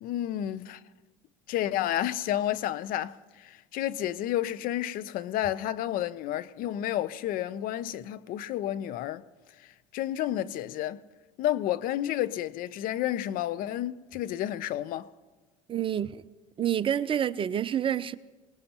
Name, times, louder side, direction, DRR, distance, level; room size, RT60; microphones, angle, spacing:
voice 1, 0.0-0.8 1.5-9.2 9.6-9.7 9.9-11.0 11.4-15.1, left 12 dB, 50° left, 0.6 m, -31 dB
voice 2, 15.7-16.2 16.6-18.2, right 9 dB, 30° right, 0.6 m, -28 dB
25.5 x 19.5 x 3.0 m
hypercardioid pair, 90°, 18 cm